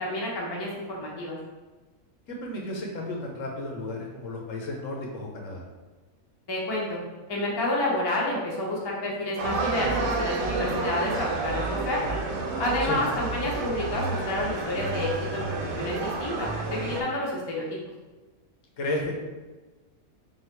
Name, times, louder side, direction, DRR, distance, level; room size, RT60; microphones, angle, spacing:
voice 1, 0.0-1.4 6.5-7.0 7.3-12.0 12.6-17.7, left 1 dB, 25° left, -3 dB, 0.5 m, -29 dB
voice 2, 2.3-5.6 12.8-13.0 18.8-19.1, left 1 dB, 70° left, 0 dB, 1.1 m, -33 dB
sound 1, 9.4-17.0, right 3 dB, 85° right, 1.1 m, -30 dB
3.8 x 2.4 x 4.4 m, 1.2 s
omnidirectional pair, 1.5 m